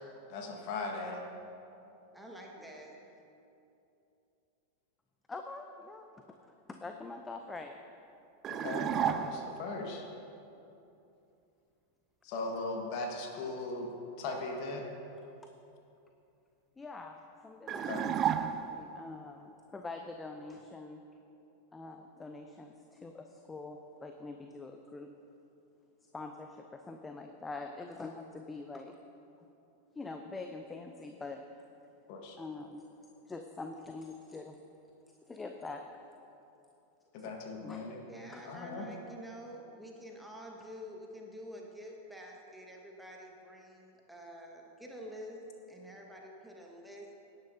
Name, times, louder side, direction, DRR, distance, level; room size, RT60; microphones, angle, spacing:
voice 1, 0.3-1.2 8.5-10.0 12.2-13.9 14.2-14.8 17.8-18.0 32.1-32.4 37.1-38.0 38.4-38.9, left 3 dB, 45° left, 1 dB, 1.6 m, -38 dB
voice 2, 2.1-3.0 37.4-37.5 38.1-45.4 45.7-47.1, equal, 5° right, -1 dB, 1.6 m, -48 dB
voice 3, 5.3-7.7 16.8-18.1 18.7-21.0 21.7-25.1 26.1-29.0 30.0-31.7 32.4-32.8 33.3-34.6 35.3-36.0 37.2-37.3 37.6-37.8 38.3-38.4, left 3 dB, 15° left, 5 dB, 0.6 m, -44 dB
sound 1, 8.4-9.6 17.7-19.0, right 9 dB, 30° right, 0.4 m, -32 dB
17.5 x 9.9 x 2.8 m, 2.8 s
figure-of-eight pair, 90°, 0 cm